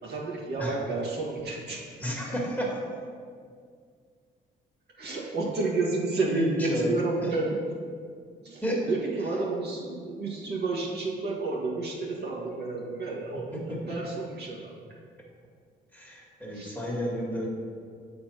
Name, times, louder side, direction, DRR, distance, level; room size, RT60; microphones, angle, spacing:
voice 1, 0.0-1.8 5.0-7.6 8.4-14.7 16.5-16.7, right 3 dB, 55° right, -4 dB, 1.8 m, -31 dB
voice 2, 2.0-2.7 6.2-7.0 8.6-8.8 13.5-13.8 15.9-17.5, equal, 10° left, -3 dB, 1.9 m, -31 dB
7.5 x 4.4 x 5.7 m, 2.1 s
cardioid pair, 90°, 20 cm